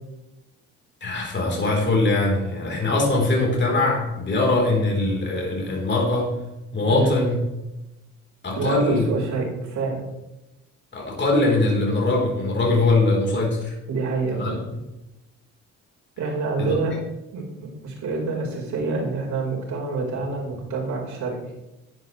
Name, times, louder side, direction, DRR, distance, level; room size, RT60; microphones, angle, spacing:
voice 1, 1.0-6.4 6.7-7.4 8.4-9.1 10.9-13.8 14.3-14.5 16.6-16.8, left 2 dB, 40° left, -2 dB, 3.8 m, -22 dB
voice 2, 8.5-10.1 13.9-14.6 16.2-16.9 17.3-21.5, right 3 dB, 70° right, -2 dB, 4.4 m, -27 dB
11.5 x 10.5 x 3.2 m, 0.95 s
cardioid pair, 90°, 30 cm